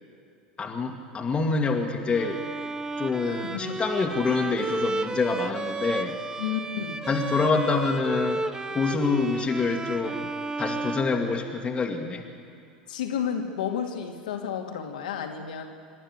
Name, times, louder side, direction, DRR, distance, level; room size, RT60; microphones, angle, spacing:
voice 1, 0.6-2.4 3.0-6.2 7.1-8.4 8.7-10.3 10.6-12.2, left 4 dB, 25° left, 1 dB, 2.0 m, -26 dB
Bowed string instrument, 2.1-11.8, right 3 dB, 15° right, 0.9 m, -33 dB
voice 2, 3.2-3.7 6.4-7.1 12.9-15.6, left 8 dB, 65° left, 3 dB, 2.3 m, -31 dB
26.0 x 12.5 x 7.9 m, 2.4 s
figure-of-eight pair, 80°, 5 cm